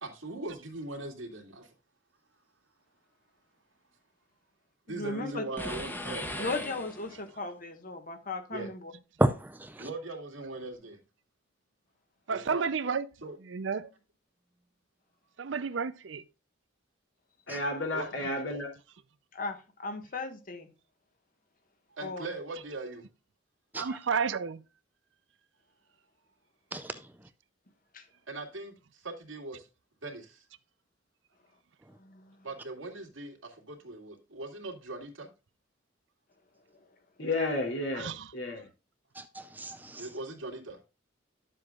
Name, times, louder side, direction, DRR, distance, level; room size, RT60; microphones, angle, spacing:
voice 1, 0.0-1.6 4.9-6.5 8.5-8.7 9.8-11.0 12.3-12.7 13.2-13.4 17.9-18.1 22.0-23.0 28.3-28.7 29.0-29.6 30.0-30.3 32.4-33.4 33.7-35.3 40.0-40.8, right 2 dB, 85° right, 2.4 m, -40 dB
voice 2, 4.9-5.4 6.4-8.9 19.3-20.7 22.0-22.3 27.9-28.1 32.0-32.5, left 3 dB, 45° left, 1.4 m, -37 dB
sound 1, 5.6-7.4, left 1 dB, 10° left, 1.0 m, -38 dB
voice 3, 9.2-9.9 17.5-17.6 23.7-23.8 26.7-27.0 39.2-40.1, right 1 dB, 10° right, 0.4 m, -31 dB
voice 4, 12.3-13.1 13.4-13.9 15.4-16.2 23.7-24.6 37.9-38.3, right 5 dB, 65° right, 0.5 m, -31 dB
voice 5, 17.5-18.7 37.2-38.6, left 2 dB, 75° left, 3.1 m, -32 dB
11.0 x 7.5 x 2.4 m
head